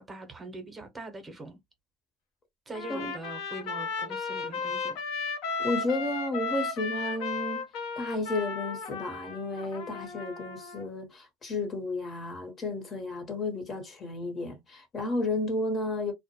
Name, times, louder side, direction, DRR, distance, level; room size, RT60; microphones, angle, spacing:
voice 1, 0.0-1.6 2.7-5.0, right 2 dB, 25° right, 0.8 m, -42 dB
Trumpet, 2.7-10.9, left 5 dB, 70° left, 0.8 m, -35 dB
voice 2, 5.6-7.7 8.0-16.1, left 2 dB, 35° left, 1.0 m, -32 dB
2.1 x 2.1 x 2.8 m
supercardioid pair, 85°, 0 cm